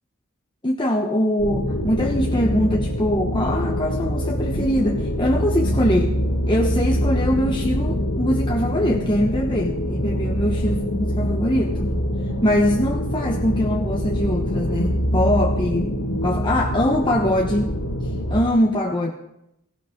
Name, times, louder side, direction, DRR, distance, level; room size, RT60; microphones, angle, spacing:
voice 1, 0.6-6.2 6.5-11.9 12.4-16.0 16.2-17.7 18.3-19.1, left 1 dB, 20° left, 0 dB, 1.1 m, -22 dB
sound 1, 1.4-18.4, equal, 85° left, 2.5 m, -24 dB
18.0 x 17.0 x 3.8 m, 0.80 s
head